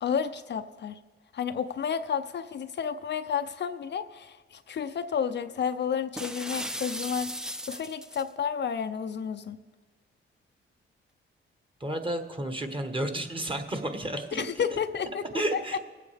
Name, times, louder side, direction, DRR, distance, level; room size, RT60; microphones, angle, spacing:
voice 1, 0.0-1.0 1.3-7.3 7.7-9.6 14.3-15.6, left 7 dB, 55° left, 0.5 m, -31 dB
sound 1, 6.2-8.3, equal, 5° right, 0.5 m, -36 dB
voice 2, 11.8-14.4 14.7-14.8 15.3-15.8, right 1 dB, 25° right, 1.3 m, -31 dB
21.5 x 8.4 x 3.4 m
cardioid pair, 75°, 21 cm